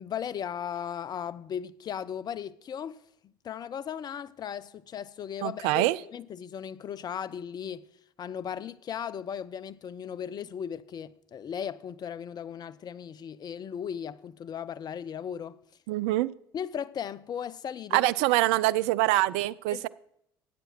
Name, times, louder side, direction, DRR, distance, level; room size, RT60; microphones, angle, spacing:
voice 1, 0.0-7.9 8.2-15.6 16.5-18.1 19.7-19.9, left 8 dB, 35° left, 0.5 m, -37 dB
voice 2, 5.4-6.0 15.9-16.3 17.9-19.9, right 18 dB, 60° right, 0.4 m, -25 dB
13.5 x 9.0 x 4.4 m
figure-of-eight pair, 60°, 12 cm